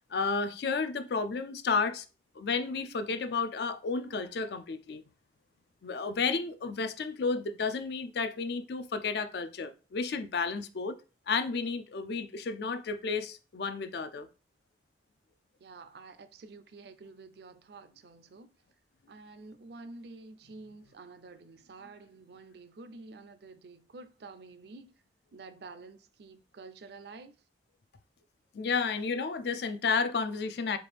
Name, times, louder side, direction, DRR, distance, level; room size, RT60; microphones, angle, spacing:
voice 1, 0.1-2.1 2.4-5.0 5.8-11.0 11.3-14.3 28.5-30.8, left 4 dB, 60° left, 0.4 m, -32 dB
voice 2, 15.6-18.5 19.1-25.0 25.3-27.4, right 3 dB, 60° right, 0.4 m, -49 dB
4.4 x 2.5 x 3.3 m
head